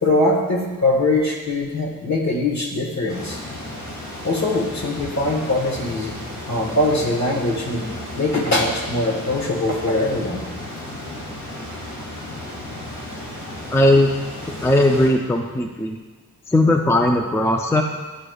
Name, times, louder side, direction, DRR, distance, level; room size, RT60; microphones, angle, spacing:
voice 1, 0.0-3.4 4.2-6.1 6.5-10.4, left 2 dB, 55° left, -1 dB, 1.4 m, -22 dB
sound 1, 3.1-15.1, left 1 dB, 90° left, 2.1 m, -34 dB
voice 2, 13.7-14.1 14.6-16.0 16.5-17.8, left 1 dB, 10° left, 3 dB, 0.4 m, -17 dB
11.0 x 4.8 x 2.3 m, 1.3 s
wide cardioid pair, 105°, 34 cm